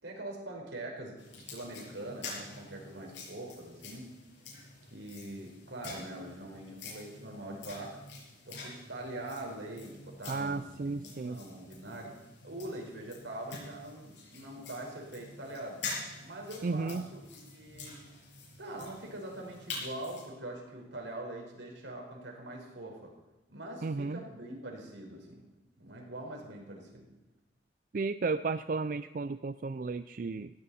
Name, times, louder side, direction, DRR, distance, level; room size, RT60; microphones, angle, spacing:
voice 1, 0.0-4.1 4.9-8.0 8.5-12.1 12.4-15.8 16.2-18.0 18.6-23.1 23.5-25.4 25.8-27.1, right 1 dB, 85° right, 1 dB, 4.9 m, -43 dB
sound 1, 1.2-20.3, left 3 dB, 75° left, 7.2 m, -47 dB
voice 2, 10.3-11.4 16.6-17.1 23.8-24.2 27.9-30.5, right 4 dB, 45° right, 12 dB, 0.4 m, -33 dB
18.0 x 16.0 x 4.3 m, 1.1 s
head